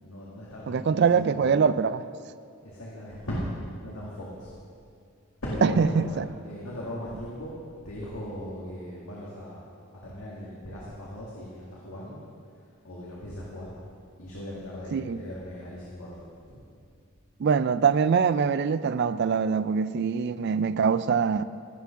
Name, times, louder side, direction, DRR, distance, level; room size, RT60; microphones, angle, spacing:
voice 1, 0.0-1.5 2.6-4.5 5.4-7.6 7.8-9.6 9.9-12.2 12.8-13.7 14.2-16.6, equal, 90° left, -6 dB, 2.0 m, -38 dB
voice 2, 0.7-2.0 5.6-6.3 14.9-15.2 17.4-21.4, right 6 dB, 50° right, 14 dB, 0.3 m, -23 dB
16.5 x 6.0 x 5.8 m, 2.3 s
head